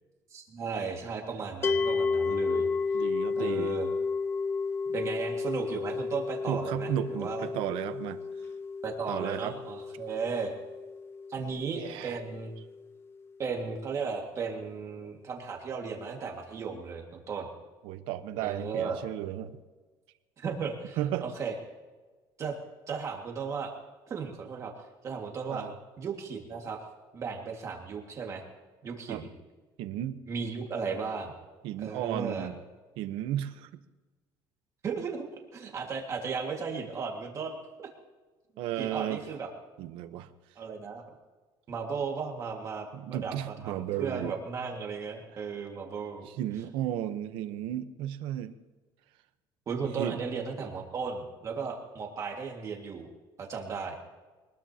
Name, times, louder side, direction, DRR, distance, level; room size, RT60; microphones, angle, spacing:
voice 1, 0.3-2.7 3.0-3.1 3.4-3.9 4.9-7.5 8.8-10.5 11.3-12.5 13.4-17.5 18.4-19.0 20.4-21.5 22.4-22.6 22.9-23.7 24.1-24.7 25.0-25.7 26.0-26.8 27.1-28.4 28.8-29.3 30.3-31.3 31.8-32.5 34.8-35.2 35.5-37.9 38.8-39.5 40.6-41.1 41.7-46.3 49.7-53.1 53.4-54.0, right 5 dB, 35° right, 1 dB, 2.0 m, -35 dB
sound 1, 1.6-12.8, left 4 dB, 30° left, 0.6 m, -32 dB
voice 2, 2.9-3.7 6.5-8.2 9.1-9.5 11.7-12.2 17.8-19.5 21.0-21.3 25.5-25.7 29.1-29.2 29.8-30.2 31.6-32.6 33.0-33.7 38.6-39.2 39.8-40.3 42.9-44.3 46.3-48.5 50.0-50.2, right 12 dB, 85° right, 10 dB, 1.0 m, -34 dB
24.0 x 20.0 x 2.9 m, 1.3 s
cardioid pair, 155°, 9 cm